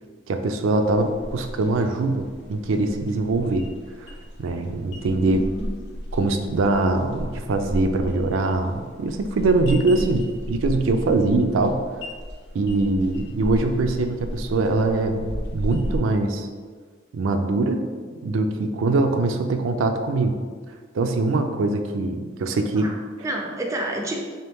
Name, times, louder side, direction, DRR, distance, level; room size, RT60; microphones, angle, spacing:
voice 1, 0.3-3.6 4.4-5.4 6.1-11.8 12.5-16.5 17.1-17.8 18.2-20.4 20.9-22.9, right 2 dB, 80° right, 6 dB, 0.4 m, -22 dB
sound 1, 0.7-16.0, equal, 60° left, 0.6 m, -34 dB
voice 2, 5.3-5.7 22.7-24.2, right 1 dB, 15° right, 0 dB, 0.4 m, -30 dB
3.7 x 2.9 x 3.4 m, 1.5 s
head